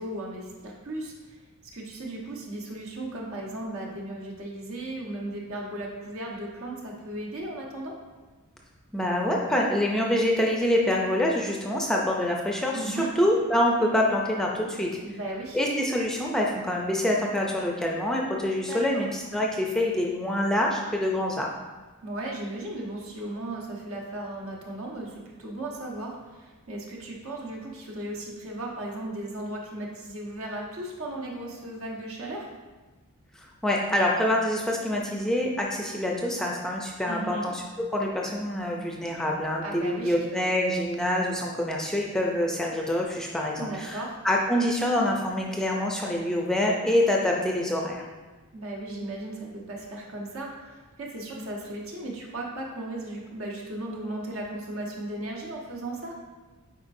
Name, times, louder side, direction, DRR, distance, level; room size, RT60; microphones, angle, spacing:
voice 1, 0.0-1.4 1.7-7.9 12.7-13.1 15.0-15.6 18.7-19.0 22.0-32.5 37.1-37.4 39.6-40.1 43.6-44.2 48.5-56.1, right 1 dB, 65° right, -2 dB, 1.2 m, -36 dB
voice 2, 8.9-14.9 15.5-21.5 33.4-37.6 37.9-48.0 51.4-51.5, left 1 dB, 5° left, -1 dB, 0.5 m, -26 dB
8.9 x 4.5 x 2.6 m, 1.3 s
head